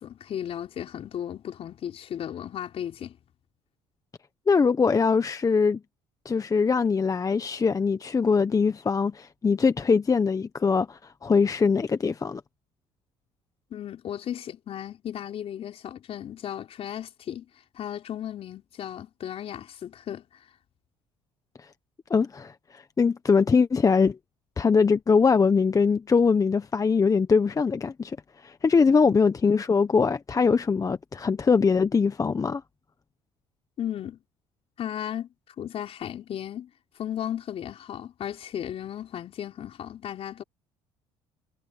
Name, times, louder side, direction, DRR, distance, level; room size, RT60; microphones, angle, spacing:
voice 1, 0.0-3.2 13.7-17.5 17.7-20.4 28.9-29.1 33.8-34.2 34.8-35.3 35.6-36.7 37.0-40.4, left 10 dB, 55° left, 4.3 m, -35 dB
voice 2, 4.5-5.8 6.2-12.4 21.6-21.7 22.1-24.2 24.6-28.2 28.4-32.6, left 5 dB, 30° left, 1.3 m, -22 dB
supercardioid pair, 75°, 12 cm